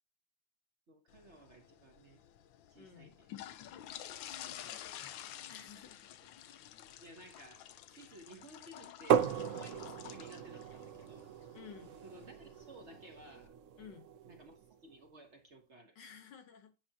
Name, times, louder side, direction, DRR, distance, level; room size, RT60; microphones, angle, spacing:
voice 1, 0.9-2.2 2.7-3.3 7.0-9.2 9.5-11.3 12.0-13.5 14.2-15.9, right 1 dB, 45° right, 1.1 m, -56 dB
sound 1, 1.1-13.5, left 11 dB, 90° left, 1.4 m, -51 dB
voice 2, 2.8-3.1 4.3-6.1 11.5-11.9 13.8-14.1 15.9-16.7, left 7 dB, 70° left, 1.7 m, -54 dB
sound 2, 9.1-14.7, right 8 dB, 65° right, 0.7 m, -36 dB
9.0 x 5.8 x 2.8 m
omnidirectional pair, 2.1 m